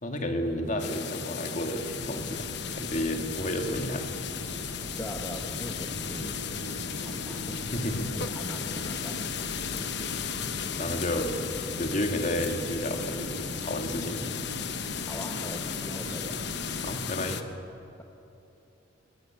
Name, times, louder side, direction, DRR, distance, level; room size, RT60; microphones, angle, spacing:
voice 1, 0.0-2.5 2.7-4.1 7.7-8.1 10.8-11.4 11.8-14.3 16.8-17.4, left 1 dB, 35° left, 4 dB, 2.2 m, -31 dB
sound 1, 0.8-17.4, left 7 dB, 55° left, 1.0 m, -35 dB
sound 2, 1.8-17.0, right 1 dB, 75° right, 2.9 m, -41 dB
voice 2, 5.0-7.6 8.2-9.5 15.0-16.4, left 1 dB, 10° left, 2 dB, 1.1 m, -42 dB
25.0 x 17.5 x 9.2 m, 2.8 s
head